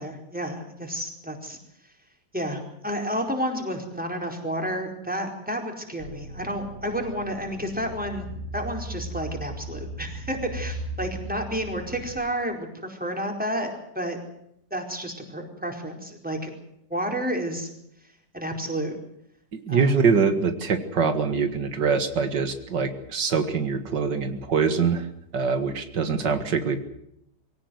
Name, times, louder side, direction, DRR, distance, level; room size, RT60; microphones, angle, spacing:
voice 1, 0.0-1.6 2.3-14.2 14.7-16.5 16.9-17.7 18.3-18.9 19.7-20.0, equal, 5° right, 2 dB, 4.6 m, -31 dB
sound 1, 6.0-12.2, right 1 dB, 45° left, 2.4 m, -37 dB
voice 2, 19.5-25.1 25.3-26.8, right 5 dB, 80° right, 8 dB, 2.4 m, -24 dB
24.0 x 17.5 x 7.9 m, 0.76 s
omnidirectional pair, 1.8 m